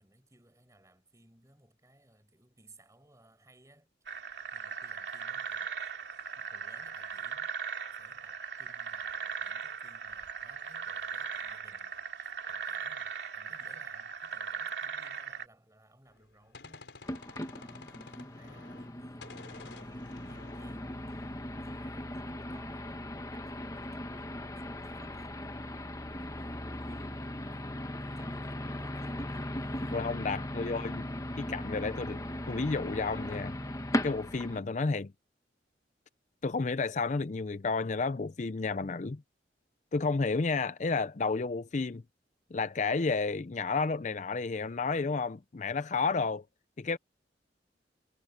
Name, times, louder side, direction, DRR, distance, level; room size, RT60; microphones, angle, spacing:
voice 1, 0.0-3.9 4.5-5.8 6.4-17.2 17.5-25.4 26.1-30.1, right 1 dB, 20° right, 6.2 m, -61 dB
sound 1, 4.1-15.5, right 6 dB, 75° right, 2.5 m, -39 dB
Gunshot gunfire, 16.1-19.0 19.2-21.9, left 3 dB, 80° left, 4.0 m, -52 dB
sound 2, 17.0-34.6, left 1 dB, 20° left, 1.3 m, -38 dB
voice 2, 29.9-31.1 31.4-33.6 34.0-35.1 36.4-39.2 39.9-42.0 42.5-46.4 46.8-47.0, left 4 dB, 40° left, 0.5 m, -31 dB
head